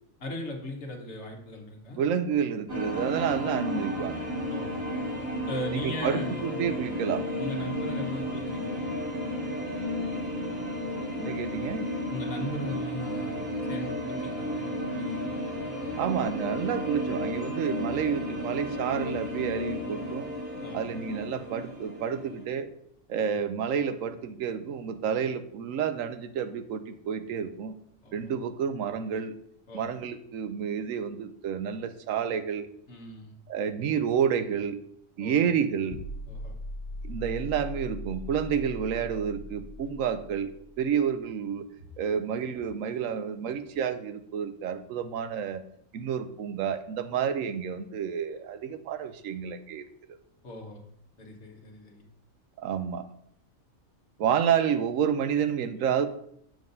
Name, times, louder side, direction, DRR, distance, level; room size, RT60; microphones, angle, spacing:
voice 1, 0.2-2.0 4.5-4.8 5.5-6.6 7.4-8.8 12.1-15.3 20.6-21.0 23.2-23.4 28.0-28.3 29.7-30.0 32.9-33.3 35.2-35.5 36.3-36.5 50.4-50.8 51.2-52.0, left 1 dB, 60° left, 2 dB, 1.5 m, -38 dB
voice 2, 2.0-4.3 5.7-7.3 11.2-11.9 16.0-20.3 20.7-22.7 23.1-27.7 28.1-29.3 29.7-32.7 33.5-34.8 35.2-36.0 37.0-40.5 40.8-41.7 42.0-45.6 45.9-50.2 52.6-53.1 54.2-56.1, right 8 dB, 80° right, 10 dB, 1.0 m, -29 dB
sound 1, 2.7-22.4, equal, 45° right, 2.4 m, -33 dB
sound 2, 35.9-40.9, left 1 dB, 85° left, 0.4 m, -40 dB
7.6 x 7.3 x 2.6 m, 0.69 s
omnidirectional pair, 1.4 m